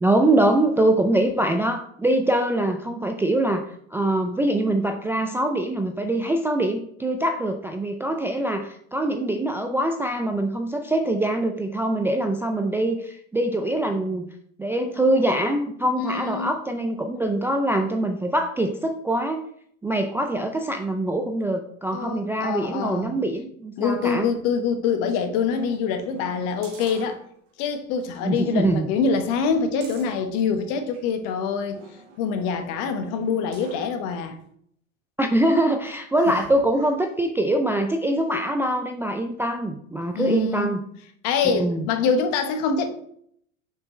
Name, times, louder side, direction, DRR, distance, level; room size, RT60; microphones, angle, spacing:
voice 1, 0.0-3.7 3.9-14.3 14.6-19.4 19.8-24.3 28.2-28.9 35.2-40.8 41.5-41.8, right 1 dB, 5° right, 4 dB, 0.4 m, -23 dB
voice 2, 16.0-16.5 21.9-23.1 23.8-27.2 27.6-31.8 32.2-34.4 36.3-36.4 40.1-40.7 41.2-42.9, left 5 dB, 50° left, 7 dB, 1.2 m, -25 dB
sound 1, 25.5-27.7 28.1-28.2 28.6-31.1 31.7-33.9 34.4-34.5, right 3 dB, 65° right, 2.3 m, -47 dB
6.6 x 5.7 x 3.1 m, 0.66 s
hypercardioid pair, 85°, 39 cm